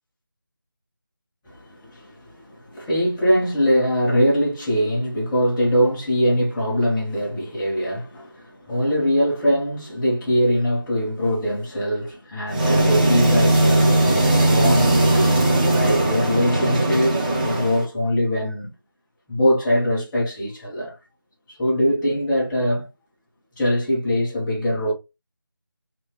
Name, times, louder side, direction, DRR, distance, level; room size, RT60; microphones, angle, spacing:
voice 1, 1.5-14.0 14.5-18.7 19.3-21.0 21.5-22.9 23.5-24.9, equal, 5° left, 1.0 m, -22 dB
sound 1, 12.5-17.8, right 1 dB, 20° right, 1.1 m, -18 dB
3.4 x 3.3 x 3.2 m
figure-of-eight pair, 165°, 12 cm